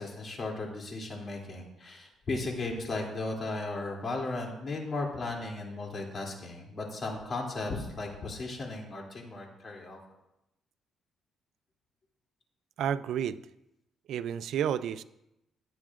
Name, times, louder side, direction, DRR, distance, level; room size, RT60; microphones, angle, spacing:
voice 1, 0.0-10.0, left 2 dB, 45° left, -1 dB, 2.8 m, -36 dB
voice 2, 12.8-13.4 14.1-15.0, right 9 dB, 75° right, 15 dB, 0.4 m, -30 dB
18.0 x 8.5 x 2.5 m, 0.87 s
cardioid pair, 90°, 0 cm